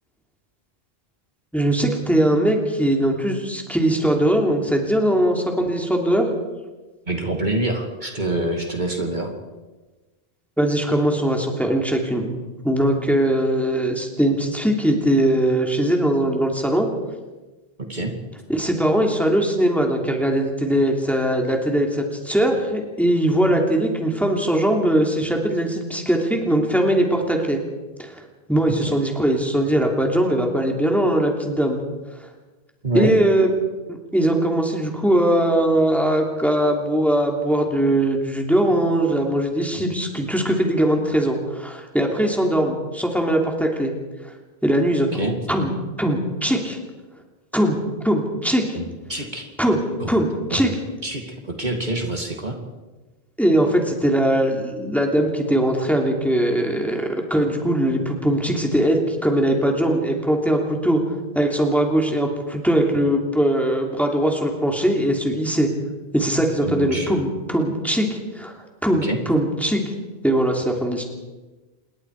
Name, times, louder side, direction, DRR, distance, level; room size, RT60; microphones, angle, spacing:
voice 1, 1.5-6.3 10.6-12.4 12.6-16.9 18.5-27.6 28.0-28.2 28.5-31.8 32.9-33.5 33.9-43.9 44.6-45.1 45.5-45.7 46.0-46.8 47.5-47.8 48.0-48.7 49.6-49.8 50.1-50.7 53.4-61.0 61.3-65.7 66.1-68.5 68.8-69.9 70.2-71.0, right 1 dB, ahead, 1 dB, 3.1 m, -20 dB
voice 2, 7.1-9.3 17.8-18.1 28.8-28.9 32.8-33.2 45.1-45.3 48.7-49.5 50.0-50.1 50.5-50.6 51.0-52.6 66.6-67.2 69.0-69.2, right 1 dB, 45° right, 2 dB, 2.5 m, -26 dB
27.5 x 22.0 x 4.9 m, 1.2 s
omnidirectional pair, 1.1 m